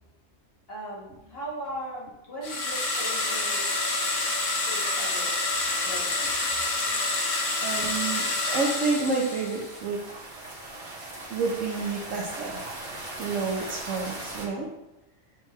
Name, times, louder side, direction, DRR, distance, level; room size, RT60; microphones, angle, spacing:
voice 1, 0.7-3.6 4.7-5.3 5.8-6.1, right 1 dB, 50° left, -6 dB, 2.1 m, -38 dB
sound 1, 2.4-9.7, left 2 dB, 75° left, 1.4 m, -28 dB
voice 2, 7.6-10.0 11.3-12.6 13.2-14.7, right 4 dB, 75° right, -3 dB, 1.2 m, -29 dB
sound 2, 8.9-14.5, right 1 dB, 50° right, 1.6 m, -39 dB
8.5 x 3.7 x 3.1 m, 0.94 s
omnidirectional pair, 1.3 m